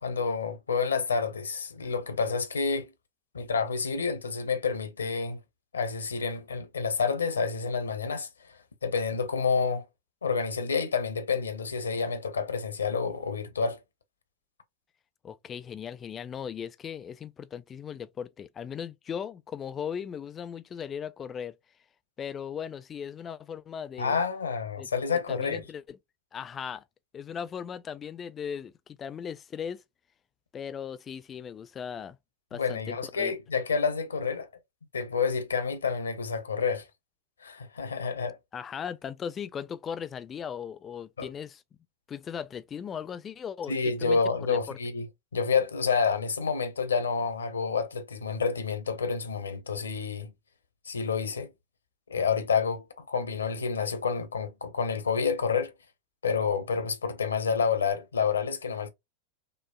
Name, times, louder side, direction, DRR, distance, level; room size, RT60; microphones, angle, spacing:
voice 1, 0.0-2.9 3.3-5.4 5.7-9.9 10.2-13.8 24.0-25.6 32.5-34.5 34.9-36.9 37.4-38.4 41.2-41.3 43.7-45.1 45.3-50.3 50.9-51.5 52.1-55.7 56.2-58.9, left 5 dB, 70° left, 0.6 m, -29 dB
voice 2, 15.2-21.5 22.2-24.2 24.8-24.9 25.3-26.0 26.3-26.8 27.1-29.8 30.5-32.2 32.5-33.3 38.5-41.6 42.1-44.2 44.5-44.8, left 7 dB, 25° left, 0.3 m, -38 dB
5.2 x 2.0 x 2.3 m
figure-of-eight pair, 90°, 0 cm